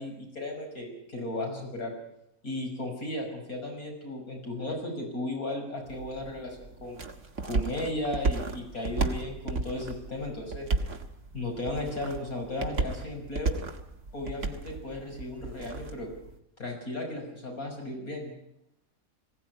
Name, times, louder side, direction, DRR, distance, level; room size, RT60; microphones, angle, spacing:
voice 1, 0.0-1.9 2.4-7.0 7.5-10.7 11.3-13.5 14.1-16.1 16.6-18.3, left 1 dB, 90° left, 1 dB, 6.5 m, -35 dB
sound 1, 5.9-16.4, right 3 dB, 55° right, 2.1 m, -34 dB
21.0 x 17.0 x 9.5 m, 0.81 s
omnidirectional pair, 1.5 m